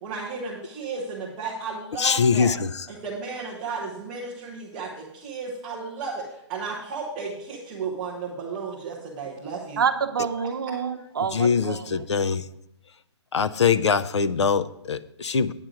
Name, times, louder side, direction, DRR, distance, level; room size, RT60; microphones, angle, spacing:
voice 1, 0.0-2.5 2.9-9.8 10.4-10.5, right 4 dB, 5° right, 0.4 m, -34 dB
voice 2, 2.0-2.7 11.3-12.5 13.3-15.5, left 6 dB, 70° left, 0.6 m, -23 dB
voice 3, 9.8-11.8, right 7 dB, 50° right, 0.8 m, -27 dB
9.0 x 4.8 x 7.5 m
hypercardioid pair, 180°, 15 cm